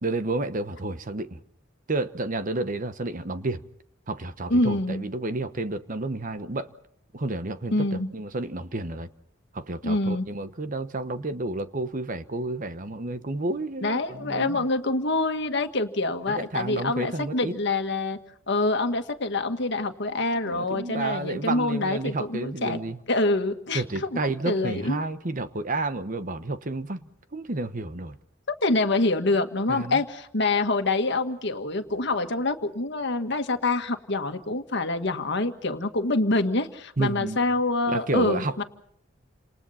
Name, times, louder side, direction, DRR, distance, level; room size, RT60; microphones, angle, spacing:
voice 1, 0.0-1.4 1.9-3.6 4.1-6.7 7.1-9.1 9.5-14.6 16.3-17.5 20.4-23.0 23.7-28.2 29.7-30.0 37.0-37.4 37.9-38.6, right 2 dB, 45° right, 1.1 m, -31 dB
voice 2, 4.5-5.0 7.7-8.1 9.8-10.3 13.8-18.2 18.5-22.8 23.1-25.0 28.6-38.6, left 2 dB, 65° left, 1.8 m, -26 dB
29.5 x 27.5 x 4.3 m
head